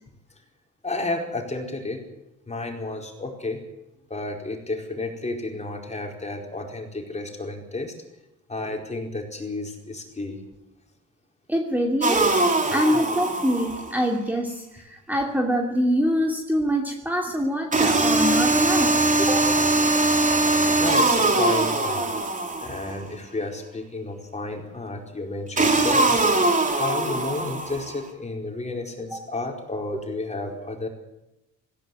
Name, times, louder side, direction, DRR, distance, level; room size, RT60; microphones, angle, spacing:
voice 1, 0.8-2.0 2.5-3.6 4.1-7.9 8.5-10.4 12.7-13.0 20.8-22.1 22.6-26.3 26.8-30.9, left 2 dB, 20° left, 2 dB, 4.7 m, -32 dB
voice 2, 11.5-12.4 12.7-19.5 29.1-29.3, equal, 5° right, 1 dB, 2.7 m, -25 dB
sound 1, 12.0-14.0 17.7-23.0 25.6-28.0, right 2 dB, 25° right, 3.2 m, -21 dB
18.0 x 16.0 x 9.7 m, 0.91 s
cardioid pair, 90°, 30 cm